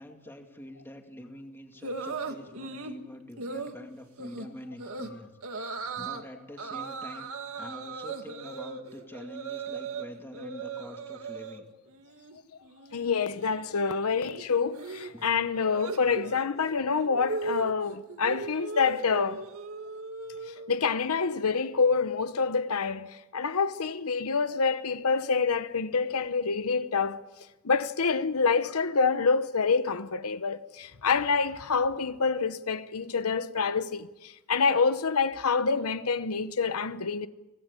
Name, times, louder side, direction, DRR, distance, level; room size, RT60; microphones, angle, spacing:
voice 1, 0.0-7.3 7.5-11.7 15.1-15.4, left 1 dB, 10° left, 2.3 m, -46 dB
sound 1, 1.8-3.0 3.4-3.8 4.2-4.5 4.8-5.1 5.4-6.2 6.6-10.1 10.3-11.6 11.9-12.4 12.6-20.8, right 3 dB, 70° right, 2.1 m, -38 dB
voice 2, 12.9-19.4 20.7-27.2 27.6-37.3, left 5 dB, 85° left, 0.9 m, -27 dB
24.0 x 18.5 x 8.3 m
head